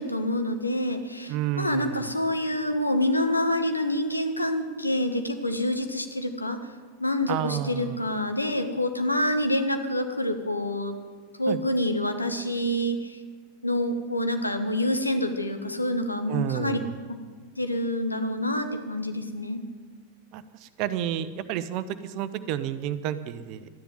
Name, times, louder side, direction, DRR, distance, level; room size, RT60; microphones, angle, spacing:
voice 1, 0.0-6.6 7.0-11.0 11.4-13.2 13.6-16.8 17.1-17.2 17.6-19.6, left 1 dB, 85° left, 7 dB, 1.3 m, -27 dB
voice 2, 1.3-2.1 7.3-8.0 11.5-11.6 16.3-16.9 20.3-23.7, right 10 dB, 45° right, 13 dB, 0.8 m, -30 dB
13.0 x 10.0 x 9.7 m, 1.5 s
figure-of-eight pair, 90°, 0 cm